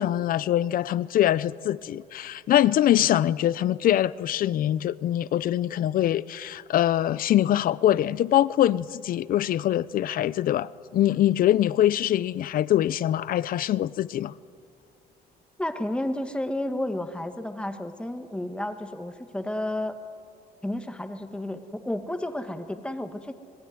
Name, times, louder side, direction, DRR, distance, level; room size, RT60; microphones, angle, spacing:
voice 1, 0.0-14.3, left 12 dB, 55° left, 0.7 m, -23 dB
voice 2, 15.6-20.0 20.6-23.3, left 1 dB, 5° left, 1.7 m, -31 dB
25.5 x 19.0 x 9.6 m
cardioid pair, 110°, 17 cm